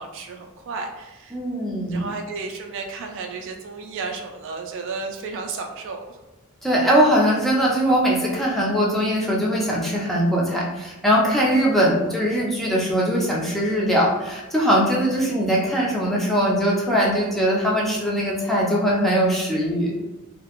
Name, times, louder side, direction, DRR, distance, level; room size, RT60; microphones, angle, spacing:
voice 1, 0.0-1.4 1.7-6.2, right 4 dB, 60° right, 3 dB, 0.3 m, -33 dB
voice 2, 1.3-2.1 6.6-19.9, equal, ahead, -5 dB, 0.5 m, -21 dB
2.3 x 2.0 x 2.9 m, 1.1 s
head